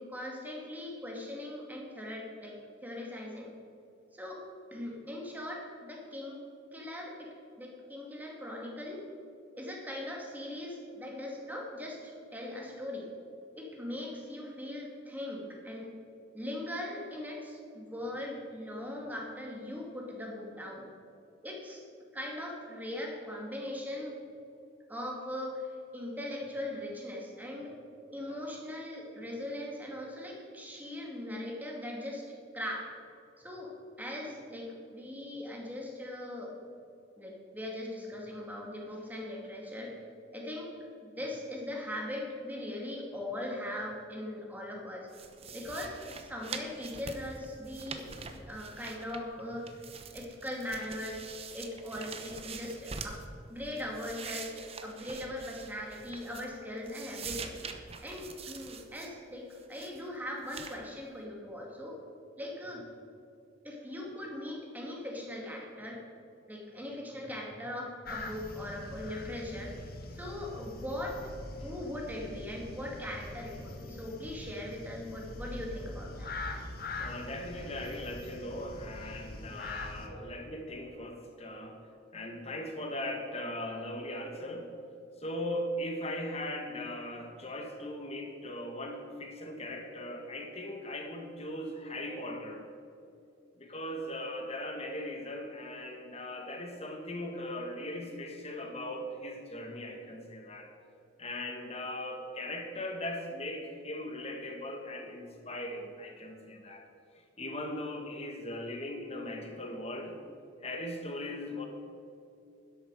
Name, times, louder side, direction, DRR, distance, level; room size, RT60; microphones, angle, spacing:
voice 1, 0.0-3.5 4.1-4.4 4.7-6.4 6.7-9.1 9.5-13.1 13.5-15.9 16.3-20.9 21.4-21.8 22.1-24.2 24.9-25.7 25.9-27.7 28.1-32.3 32.5-32.9 33.4-33.7 34.0-36.5 37.2-39.9 40.3-40.7 41.0-45.1 45.5-48.1 48.5-49.7 50.1-51.2 51.5-53.2 53.5-57.5 58.0-62.0 62.4-62.8 63.6-66.0 66.5-69.7 70.1-71.2 71.5-76.3, left 1 dB, 10° right, -1 dB, 2.3 m, -40 dB
sound 1, 45.1-49.4 49.7-53.3 53.7-56.6 56.9-59.1 59.5-60.0 60.5-60.8, right 5 dB, 30° right, 0.9 m, -44 dB
sound 2, 68.1-80.1, left 2 dB, 50° left, 1.4 m, -43 dB
voice 2, 76.9-81.8 82.1-84.7 85.2-92.7 93.6-100.7 101.2-106.9 107.4-110.1 110.6-111.7, left 1 dB, 30° left, 3 dB, 1.8 m, -39 dB
12.5 x 11.0 x 4.8 m, 2.6 s
head